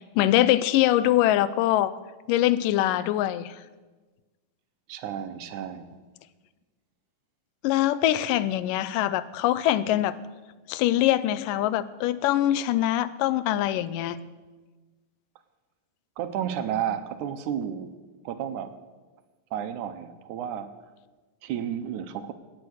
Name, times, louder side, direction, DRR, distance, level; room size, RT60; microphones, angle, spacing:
voice 1, 0.0-1.9 2.3-3.6 7.6-10.2 10.7-14.2, left 13 dB, 85° left, 2.3 m, -23 dB
voice 2, 4.9-6.0 16.2-17.9 18.3-18.7 19.5-20.7 21.4-22.3, right 9 dB, 75° right, 2.1 m, -32 dB
16.5 x 9.6 x 6.4 m
omnidirectional pair, 3.8 m